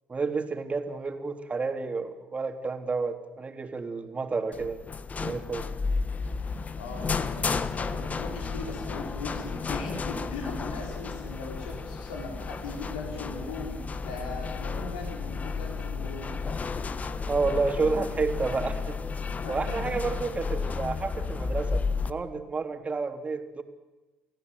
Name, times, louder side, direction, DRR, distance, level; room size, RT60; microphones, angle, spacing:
voice 1, 0.1-4.8 5.2-5.7 17.3-19.0 19.5-23.6, right 4 dB, 25° right, 6 dB, 3.4 m, -30 dB
sound 1, 4.5-22.1, left 4 dB, 30° left, 1.5 m, -32 dB
voice 2, 6.8-13.8 14.0-16.4 19.4-19.6, left 3 dB, 80° left, 1 dB, 5.5 m, -39 dB
29.0 x 16.0 x 9.5 m, 1.2 s
hypercardioid pair, 65°, 5 cm